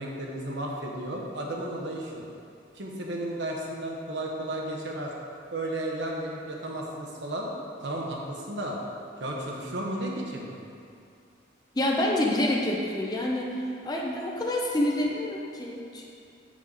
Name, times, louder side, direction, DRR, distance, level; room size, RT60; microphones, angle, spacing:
voice 1, 0.0-2.2 2.7-5.1 5.5-7.5 7.8-8.8 9.2-10.6, right 1 dB, 80° right, -1 dB, 1.1 m, -33 dB
voice 2, 11.7-13.5 13.8-16.1, left 1 dB, 20° left, -2 dB, 0.7 m, -27 dB
6.8 x 6.4 x 4.0 m, 2.5 s
head